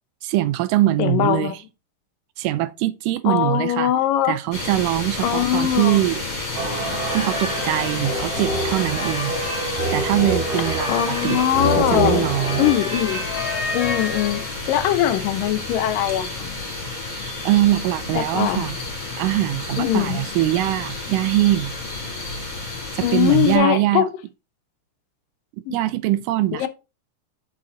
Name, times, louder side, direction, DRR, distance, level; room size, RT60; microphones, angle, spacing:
voice 1, 0.2-1.6 2.4-3.9 4.3-6.2 7.1-9.3 9.9-12.7 17.5-18.8 19.2-21.7 22.9-24.1 25.7-26.7, right 15 dB, 80° right, 2.1 m, -22 dB
voice 2, 1.0-1.5 3.3-4.3 5.2-6.0 10.9-12.3 12.6-13.2 13.7-14.4 14.7-16.6 18.2-18.7 19.8-20.2 23.0-24.1 25.7-25.8 26.6-26.7, left 11 dB, 85° left, 2.6 m, -21 dB
sound 1, 4.5-23.6, left 3 dB, 30° left, 3.3 m, -31 dB
sound 2, 6.5-15.4, right 3 dB, 45° right, 3.3 m, -33 dB
sound 3, 6.8-14.7, left 1 dB, 45° left, 0.8 m, -27 dB
7.5 x 5.7 x 4.0 m
omnidirectional pair, 3.9 m